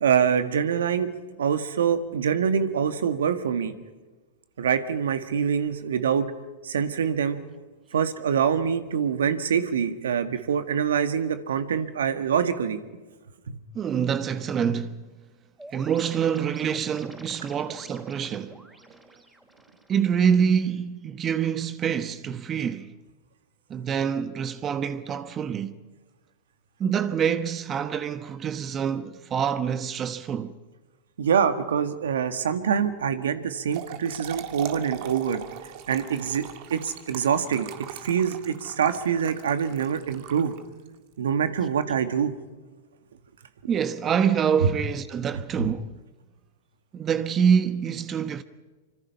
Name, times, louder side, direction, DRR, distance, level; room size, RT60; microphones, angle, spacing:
voice 1, 0.0-1.1 1.4-3.7 4.6-6.3 6.6-7.4 7.9-12.8 13.5-13.6 31.2-35.4 35.9-37.7 38.0-40.5 41.2-42.3 44.6-44.7 45.6-45.7, right 7 dB, 80° right, 1.8 m, -25 dB
voice 2, 13.7-15.1 15.7-18.6 19.9-22.9 23.7-25.8 26.8-30.6 43.7-46.0 46.9-48.4, right 7 dB, 30° right, 1.1 m, -26 dB
sound 1, 15.6-20.6, right 1 dB, 5° right, 4.4 m, -48 dB
Trickle dribble / Fill (with liquid), 33.5-40.9, right 11 dB, 55° right, 2.1 m, -40 dB
25.5 x 25.0 x 5.6 m
hypercardioid pair, 110°, 0 cm